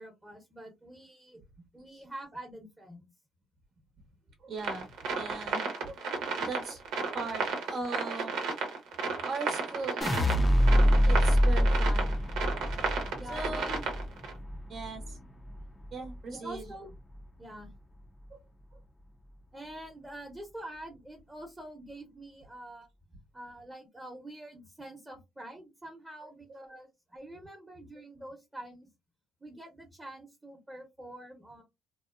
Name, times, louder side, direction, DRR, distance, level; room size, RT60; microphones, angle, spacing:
voice 1, 0.0-1.4 1.7-3.0 11.9-12.1 13.1-13.9 16.3-16.9 17.4-17.7 19.5-22.9 23.3-28.9 29.4-31.6, right 1 dB, 15° right, 1 dB, 0.8 m, -46 dB
voice 2, 4.4-4.9 5.1-8.5 9.2-12.3 13.3-13.8 14.7-15.3 15.9-16.7 18.3-18.4 18.7-18.8 26.2-26.3, right 3 dB, 55° right, 3 dB, 0.7 m, -40 dB
sound 1, 4.6-14.3, right 5 dB, 90° right, 0.8 m, -33 dB
sound 2, 10.0-16.2 16.6-17.2, equal, 25° left, 0.4 m, -26 dB
2.7 x 2.0 x 2.4 m, 0.21 s
cardioid pair, 90°, 0 cm